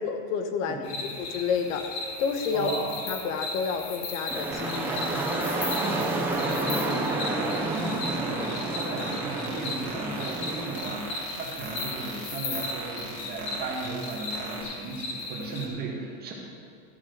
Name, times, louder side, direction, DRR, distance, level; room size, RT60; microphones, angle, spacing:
voice 1, 0.0-1.9 2.2-2.7 3.1-5.0, left 6 dB, 70° left, 6 dB, 1.2 m, -30 dB
voice 2, 0.6-1.0 2.5-2.9 4.9-5.1 5.8-16.3, right 3 dB, 25° right, -2 dB, 1.9 m, -36 dB
sound 1, 0.8-15.7, left 3 dB, 50° left, 1.7 m, -36 dB
sound 2, 4.3-10.8, right 2 dB, 5° right, 0.4 m, -30 dB
sound 3, 4.5-14.6, right 5 dB, 45° right, 2.0 m, -40 dB
14.5 x 6.0 x 6.5 m, 2.4 s
supercardioid pair, 170°, 41 cm